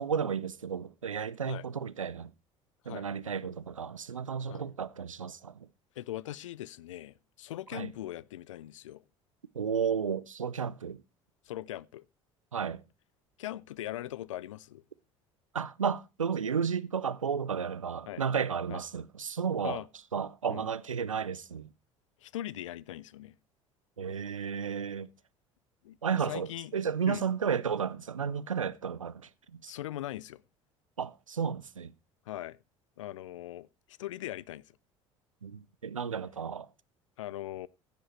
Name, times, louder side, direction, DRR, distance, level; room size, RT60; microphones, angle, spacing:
voice 1, 0.0-2.3 2.9-5.7 7.7-7.9 9.5-11.0 12.5-12.8 15.5-19.8 20.1-21.7 24.0-25.1 26.0-29.7 31.0-31.9 35.4-36.7, right 7 dB, 85° right, 0.4 m, -33 dB
voice 2, 6.0-9.0 11.4-12.1 13.4-14.8 18.1-18.2 18.7-18.8 19.6-19.9 20.5-20.7 22.2-23.3 25.8-26.7 27.1-27.2 29.7-30.4 32.3-32.6 33.0-34.7 37.2-37.7, left 14 dB, 75° left, 0.4 m, -40 dB
15.5 x 5.2 x 4.4 m
figure-of-eight pair, 65°, 16 cm